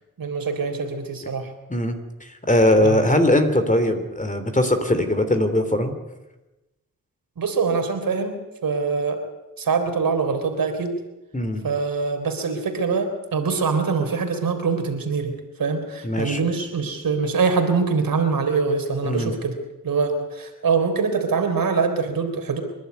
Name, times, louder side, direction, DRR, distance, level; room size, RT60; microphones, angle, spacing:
voice 1, 0.2-1.5 2.8-3.0 7.4-8.3 8.6-9.2 9.6-10.9 11.6-15.3 15.6-19.6 19.8-22.6, right 5 dB, 70° right, 6 dB, 3.6 m, -23 dB
voice 2, 1.7-5.9 11.3-11.6 16.0-16.4 19.0-19.3, left 1 dB, 20° left, 7 dB, 3.5 m, -20 dB
27.0 x 11.5 x 9.5 m, 1.0 s
cardioid pair, 65°, 35 cm